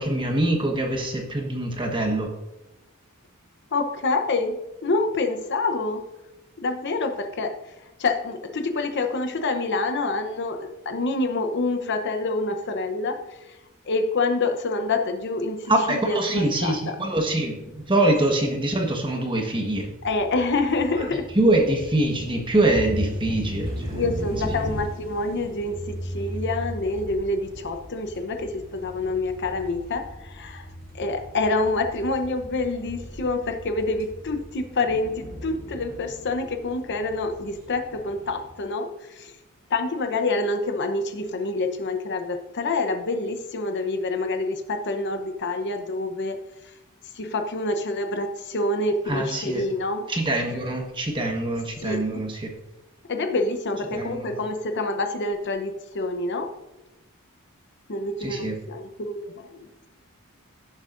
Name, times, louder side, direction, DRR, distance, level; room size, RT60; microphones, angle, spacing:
voice 1, 0.0-2.3 15.7-19.9 21.3-24.0 49.1-49.6 50.1-52.5 53.9-54.3 58.2-58.6, right 1 dB, 25° right, 2 dB, 1.4 m, -24 dB
voice 2, 3.7-6.0 6.6-7.7 8.0-13.6 13.8-17.0 20.0-21.3 23.9-30.7 30.9-39.3 39.7-46.7 47.1-50.1 51.8-52.0 53.0-56.5 57.9-59.5, left 2 dB, 55° left, 6 dB, 0.8 m, -27 dB
sound 1, 19.7-38.5, equal, 45° right, 2.6 m, -37 dB
17.0 x 7.3 x 2.6 m, 0.98 s
head